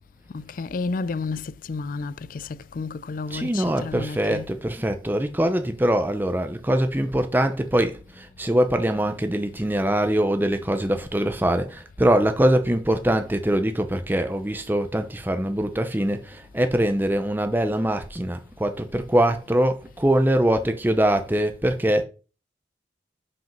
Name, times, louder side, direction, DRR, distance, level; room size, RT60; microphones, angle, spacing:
voice 1, 0.3-4.5, left 4 dB, 45° left, 0.4 m, -31 dB
voice 2, 3.3-22.0, right 1 dB, 10° right, 0.6 m, -23 dB
6.0 x 5.1 x 5.9 m
head